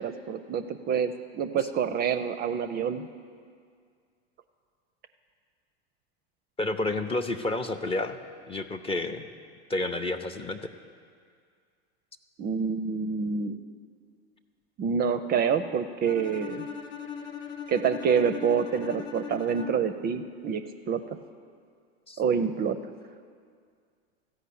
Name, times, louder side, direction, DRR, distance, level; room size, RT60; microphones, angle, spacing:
voice 1, 0.0-3.1 12.4-13.6 14.8-16.7 17.7-21.2 22.2-22.8, right 6 dB, 30° right, 9 dB, 0.5 m, -27 dB
voice 2, 6.6-8.2 8.5-9.3 9.7-10.6 22.1-22.2, left 2 dB, 15° left, 7 dB, 0.5 m, -30 dB
Bowed string instrument, 16.0-20.0, left 8 dB, 65° left, 0.9 m, -39 dB
14.0 x 5.3 x 8.5 m, 2.1 s
hypercardioid pair, 95°, 33 cm